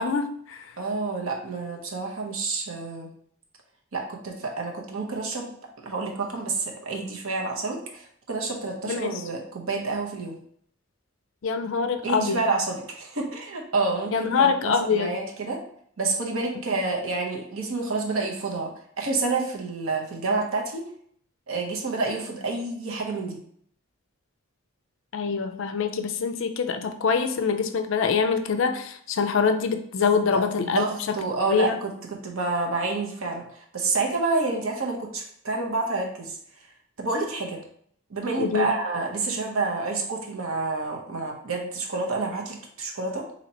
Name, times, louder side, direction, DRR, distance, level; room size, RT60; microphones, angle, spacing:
voice 1, 0.0-0.7 8.9-9.2 11.4-12.4 14.1-15.1 25.1-30.9 31.5-31.8 38.4-38.7, left 5 dB, 60° left, 7 dB, 0.4 m, -24 dB
voice 2, 0.8-3.1 3.9-5.5 5.8-10.4 12.0-15.6 16.0-20.8 21.5-23.4 30.3-36.4 37.0-37.6 38.1-43.2, right 3 dB, 70° right, 0 dB, 0.8 m, -29 dB
2.8 x 2.8 x 4.1 m, 0.65 s
head